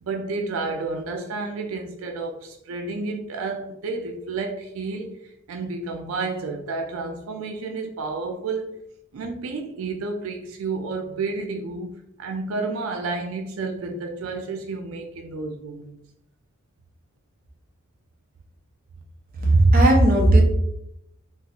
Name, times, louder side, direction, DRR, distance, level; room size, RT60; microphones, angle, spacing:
voice 1, 0.0-8.8 9.1-11.9 12.2-16.0, right 3 dB, 90° right, 0.4 m, -31 dB
voice 2, 19.4-20.4, right 1 dB, 45° right, 0.7 m, -15 dB
3.7 x 2.4 x 2.8 m
head